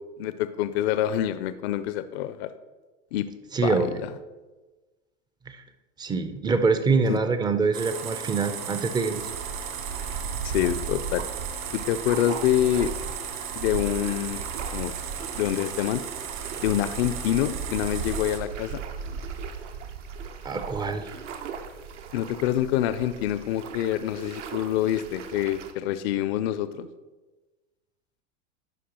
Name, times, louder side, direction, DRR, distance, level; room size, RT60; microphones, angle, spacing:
voice 1, 0.2-2.5 3.1-3.3 3.6-4.1 7.1-7.2 10.4-11.2 11.7-12.9 13.5-14.4 14.7-14.9 15.3-16.0 16.6-18.8 22.1-26.9, left 12 dB, 60° left, 13 dB, 0.5 m, -26 dB
voice 2, 3.5-4.0 5.5-5.6 6.0-9.3 20.4-21.1, right 4 dB, 10° right, 9 dB, 0.3 m, -25 dB
sound 1, 7.7-18.4, right 8 dB, 60° right, 1.3 m, -36 dB
sound 2, 9.1-25.7, right 5 dB, 75° right, 0.8 m, -37 dB
11.0 x 4.7 x 2.9 m, 1.2 s
hypercardioid pair, 95°, 36 cm